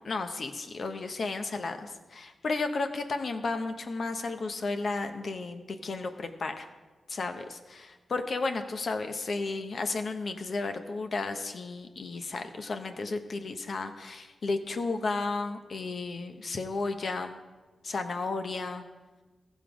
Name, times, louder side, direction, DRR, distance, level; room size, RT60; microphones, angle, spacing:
voice 1, 0.0-6.7 7.1-17.4 17.8-18.8, left 3 dB, 65° left, 7 dB, 0.9 m, -33 dB
15.0 x 5.4 x 4.9 m, 1.3 s
cardioid pair, 50°, 0 cm